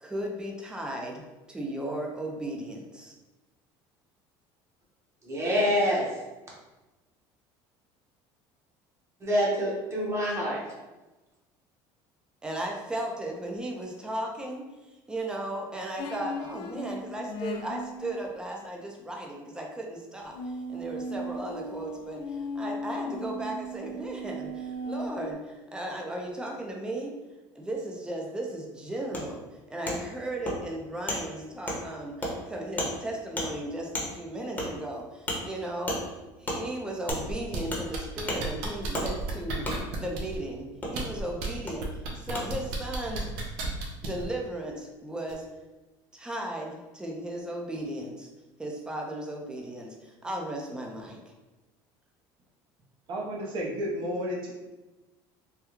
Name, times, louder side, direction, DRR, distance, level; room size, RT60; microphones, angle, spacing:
voice 1, 0.0-3.1 12.4-14.7 15.1-27.2 27.6-36.0 36.4-41.9 42.1-43.6 44.0-45.5 46.1-48.3 48.6-51.2, right 1 dB, 10° right, 0 dB, 0.5 m, -36 dB
voice 2, 5.3-6.1 9.2-10.6, equal, 25° right, -4 dB, 1.1 m, -26 dB
sound 1, 16.0-18.2 20.3-25.3, equal, 60° left, 0.4 m, -37 dB
Wood, 29.1-29.2 29.9-30.0 30.5-30.6 31.1-31.2 31.7-31.8 32.2-32.3 32.8-32.9 33.4-33.5 33.9-34.1 34.6-34.7 35.3-35.4 35.9-36.0 36.5-36.6 37.1-37.2 37.7-37.8 38.3-38.4 38.9-39.1 39.6-39.8 40.8-40.9 41.7-41.8 42.3-42.4, left 1 dB, 15° left, 0.9 m, -31 dB
sound 2, 37.1-37.6 37.9-40.4 40.9-41.5 41.8-44.2 45.3-45.4, right 3 dB, 80° right, 0.7 m, -34 dB
voice 3, 53.1-54.5, equal, 50° right, -2 dB, 0.9 m, -32 dB
3.4 x 2.3 x 3.0 m, 1.1 s
cardioid pair, 115°, 11 cm